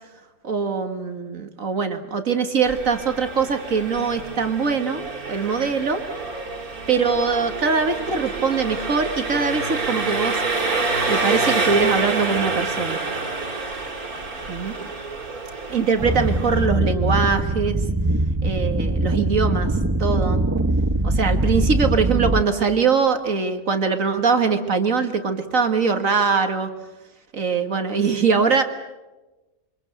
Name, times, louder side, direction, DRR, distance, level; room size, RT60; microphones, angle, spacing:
voice 1, 0.4-5.0 5.3-6.0 6.9-10.4 11.0-13.0 14.5-14.7 15.7-17.8 18.4-19.7 20.0-20.4 21.0-26.7 27.3-28.6, right 5 dB, 65° right, 7 dB, 2.2 m, -22 dB
Engine, 2.7-16.7, right 3 dB, 85° right, 3.7 m, -28 dB
sound 1, 16.0-22.4, right 2 dB, 15° right, 0.7 m, -22 dB
26.5 x 24.5 x 8.0 m, 1.1 s
omnidirectional pair, 1.5 m